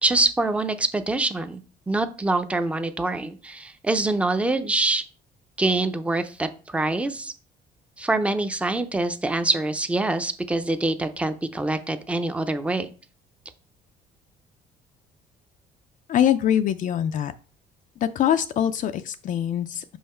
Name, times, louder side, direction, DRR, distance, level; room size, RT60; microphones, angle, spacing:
voice 1, 0.0-1.6 1.9-5.0 5.6-7.3 8.0-12.9, right 2 dB, 5° right, 9 dB, 0.5 m, -25 dB
voice 2, 16.1-17.3 18.0-19.8, left 10 dB, 50° left, 9 dB, 0.4 m, -23 dB
5.6 x 4.5 x 4.3 m, 0.37 s
cardioid pair, 110°, 17 cm